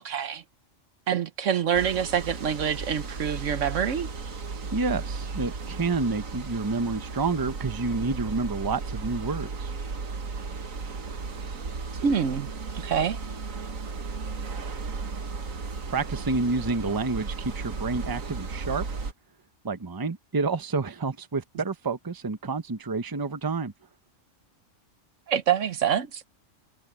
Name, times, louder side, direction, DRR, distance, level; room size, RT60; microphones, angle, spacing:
voice 1, 0.0-0.4 1.1-4.1 12.0-12.5 12.7-13.2 25.3-26.2, right 8 dB, 70° right, 1.2 m, -26 dB
sound 1, 1.7-19.1, right 4 dB, 90° right, 1.9 m, -35 dB
voice 2, 4.7-9.7 15.9-18.8 19.6-23.7, right 3 dB, 20° right, 0.8 m, -29 dB
omnidirectional pair, 1.4 m